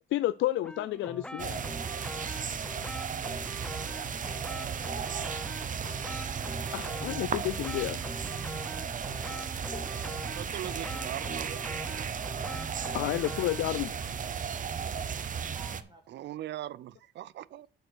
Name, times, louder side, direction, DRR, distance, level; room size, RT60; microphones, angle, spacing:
voice 1, 0.1-1.6 6.7-8.0 9.7-9.9 12.9-13.9, left 14 dB, 75° left, 0.4 m, -31 dB
sound 1, 0.6-13.8, equal, 5° left, 0.6 m, -43 dB
sound 2, 1.4-15.8, right 7 dB, 40° right, 0.8 m, -35 dB
voice 2, 10.3-11.7 14.8-14.9 16.1-17.7, right 13 dB, 60° right, 0.5 m, -40 dB
voice 3, 10.9-11.3 15.5-16.0, right 4 dB, 25° right, 1.8 m, -55 dB
7.8 x 5.4 x 6.2 m
cardioid pair, 90°, 20 cm